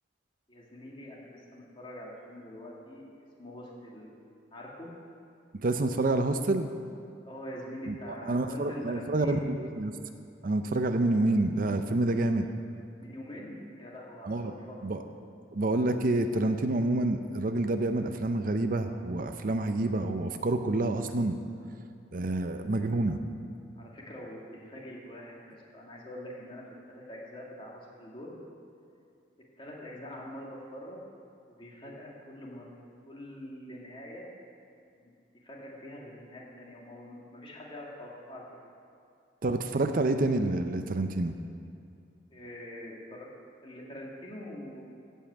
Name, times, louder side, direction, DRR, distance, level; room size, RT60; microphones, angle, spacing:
voice 1, 0.5-4.1 4.5-4.9 7.2-9.5 13.0-14.8 23.8-28.4 29.6-31.0 31.5-32.7 33.1-34.3 35.0-35.1 35.4-38.4 42.3-44.9, left 1 dB, 30° left, -3 dB, 2.2 m, -44 dB
voice 2, 5.5-6.7 7.9-9.9 10.4-12.5 14.2-14.5 14.8-15.0 15.5-21.4 22.1-23.2 39.4-41.3, right 2 dB, 50° right, 7 dB, 0.6 m, -28 dB
15.5 x 5.6 x 8.0 m, 2.4 s
head